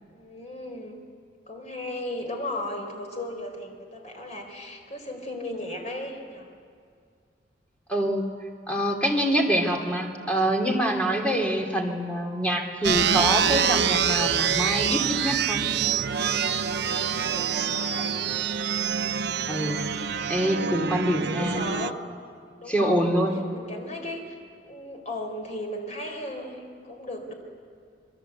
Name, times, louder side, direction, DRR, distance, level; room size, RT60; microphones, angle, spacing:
voice 1, 0.1-1.0 1.5-6.5 17.3-18.1 21.1-22.0 22.6-24.4 24.6-27.3, left 1 dB, 40° left, 3 dB, 4.0 m, -36 dB
voice 2, 7.9-8.3 8.7-15.6 19.5-19.8 20.3-21.6 22.7-23.4, right 1 dB, 5° left, 1 dB, 2.9 m, -25 dB
sound 1, 12.8-21.9, right 7 dB, 65° right, 0.7 m, -26 dB
27.0 x 22.0 x 8.2 m, 2.2 s
head